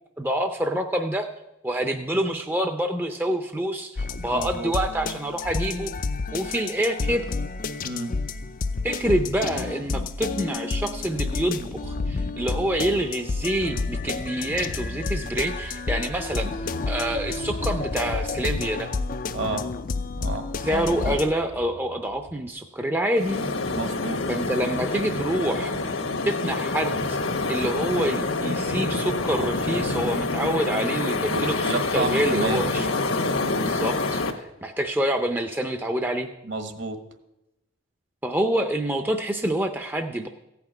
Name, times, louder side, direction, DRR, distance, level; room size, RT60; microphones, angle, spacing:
voice 1, 0.2-1.3 1.6-5.9 6.3-7.3 8.8-18.9 20.6-23.4 24.3-26.0 26.3-27.2 27.5-32.9 33.5-36.3 38.2-40.3, right 1 dB, 10° right, 6 dB, 0.5 m, -27 dB
sound 1, 4.0-21.3, left 4 dB, 40° left, 0.4 m, -30 dB
voice 2, 4.3-4.7 7.8-8.1 19.3-19.6 20.2-20.4 23.7-24.2 31.3-32.7 36.4-37.0, right 3 dB, 60° right, 7 dB, 1.5 m, -30 dB
sound 2, 11.8-14.9 15.4-19.8 20.0-22.5, right 2 dB, 80° right, 0.7 m, -43 dB
sound 3, 23.2-34.3, left 3 dB, 85° left, 1.4 m, -27 dB
15.0 x 5.9 x 9.0 m, 0.92 s
head